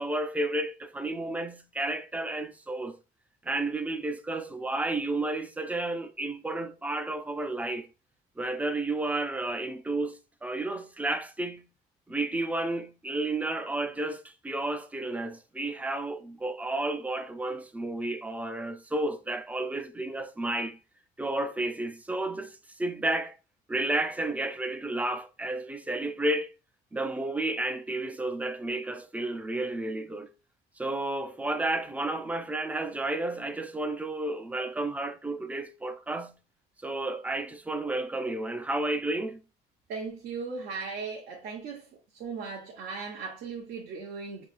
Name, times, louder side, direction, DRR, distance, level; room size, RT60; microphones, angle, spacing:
voice 1, 0.0-3.0 3.4-7.9 8.4-11.7 12.1-20.8 21.2-23.3 23.7-26.5 26.9-30.3 30.8-36.4 36.8-39.4, right 2 dB, 10° right, 0.6 m, -32 dB
voice 2, 39.9-41.8 42.2-44.5, right 5 dB, 75° right, 1.2 m, -37 dB
5.1 x 3.5 x 2.5 m
cardioid pair, 110°, 17 cm